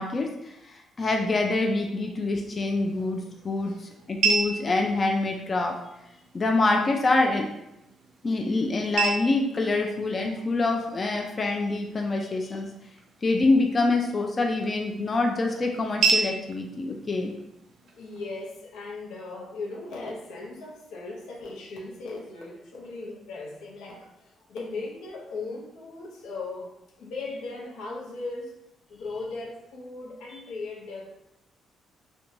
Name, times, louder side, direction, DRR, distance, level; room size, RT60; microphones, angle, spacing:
voice 1, 0.0-5.8 6.3-7.5 8.2-12.7 13.2-17.3, left 2 dB, 35° left, 1 dB, 0.3 m, -26 dB
sound 1, 2.5-18.5, right 4 dB, 75° right, 0.4 m, -34 dB
voice 2, 17.9-28.6 28.9-31.2, left 3 dB, 90° left, -2 dB, 0.6 m, -38 dB
2.5 x 2.2 x 3.0 m, 0.85 s
cardioid pair, 90°, 0 cm